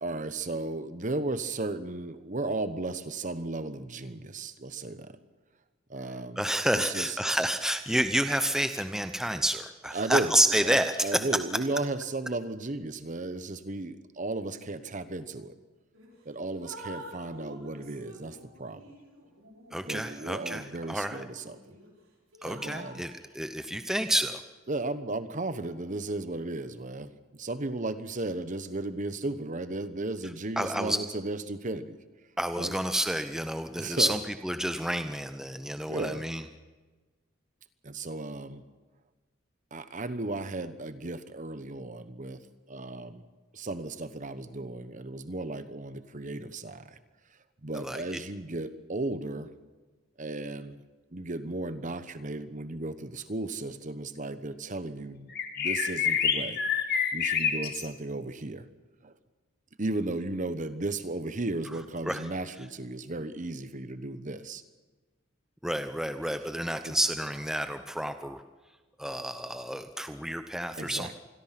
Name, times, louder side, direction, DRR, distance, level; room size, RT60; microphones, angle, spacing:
voice 1, 0.0-5.1 5.9-6.4 6.7-7.2 9.9-15.6 16.2-18.8 19.8-21.8 22.4-23.0 24.7-32.0 32.6-32.8 33.8-34.2 35.9-36.2 37.8-38.6 39.7-43.2 43.5-47.0 47.6-49.5 50.2-50.8 51.1-56.6 57.1-58.7 59.0-59.1 59.8-64.6 66.8-67.0 70.8-71.1, right 2 dB, 40° right, 12 dB, 1.1 m, -35 dB
voice 2, 6.4-11.2 19.7-21.2 22.4-24.4 30.6-31.0 32.4-36.4 47.7-48.2 62.0-62.2 65.6-68.4 69.0-71.1, right 1 dB, 5° right, 9 dB, 0.7 m, -29 dB
Drip, 15.9-16.1 16.5-21.9 22.3-23.0, right 1 dB, 85° right, 4.6 m, -48 dB
sound 1, 55.3-57.9, left 7 dB, 50° left, 2.2 m, -27 dB
26.5 x 21.5 x 5.9 m, 1.3 s
head